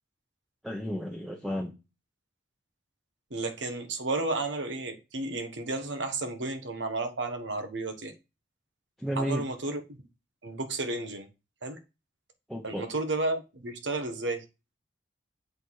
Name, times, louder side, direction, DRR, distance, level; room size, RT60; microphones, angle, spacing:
voice 1, 0.6-1.7 9.0-9.4 12.5-12.9, equal, ahead, 0 dB, 0.9 m, -32 dB
voice 2, 3.3-8.1 9.2-10.0 10.4-11.3 11.6-11.8 12.6-14.4, right 2 dB, 80° right, 6 dB, 1.3 m, -32 dB
7.8 x 4.2 x 4.7 m, 0.27 s
head